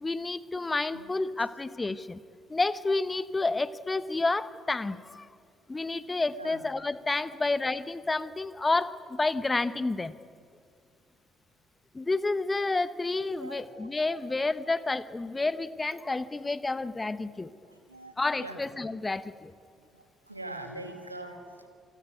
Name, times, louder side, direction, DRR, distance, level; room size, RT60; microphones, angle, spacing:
voice 1, 0.0-2.2 2.5-5.3 5.7-10.1 11.9-17.5 18.2-19.5, left 3 dB, 20° left, 15 dB, 1.0 m, -30 dB
voice 2, 6.3-6.6 7.3-7.4 13.3-14.3 17.6-18.6 19.9-21.7, right 1 dB, 85° right, 6 dB, 1.9 m, -44 dB
27.5 x 19.5 x 9.5 m, 2.2 s
figure-of-eight pair, 50°, 0 cm